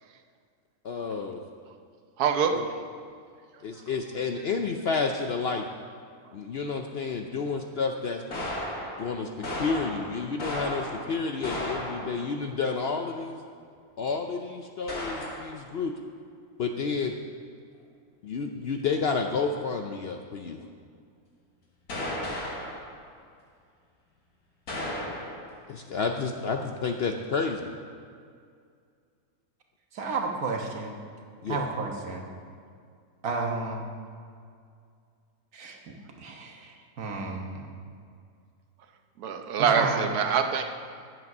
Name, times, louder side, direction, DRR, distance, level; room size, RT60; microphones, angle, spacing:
voice 1, 0.8-1.4 2.5-2.7 3.6-5.7 6.3-8.2 9.0-13.4 14.0-15.9 16.6-17.2 18.2-20.6 25.7-27.7 31.4-31.7, left 4 dB, 60° left, 4 dB, 0.6 m, -30 dB
voice 2, 2.2-2.6 39.2-40.6, right 7 dB, 90° right, 6 dB, 1.3 m, -24 dB
sound 1, 8.3-12.4 14.1-14.2 14.9-15.5 21.9-22.9 24.7-25.5, left 1 dB, 80° left, 2.3 m, -34 dB
voice 3, 29.9-31.0 31.5-32.2 33.2-33.9 35.5-37.7 39.6-40.0, right 3 dB, 75° right, 2 dB, 1.7 m, -32 dB
10.5 x 7.8 x 6.0 m, 2.2 s
omnidirectional pair, 1.6 m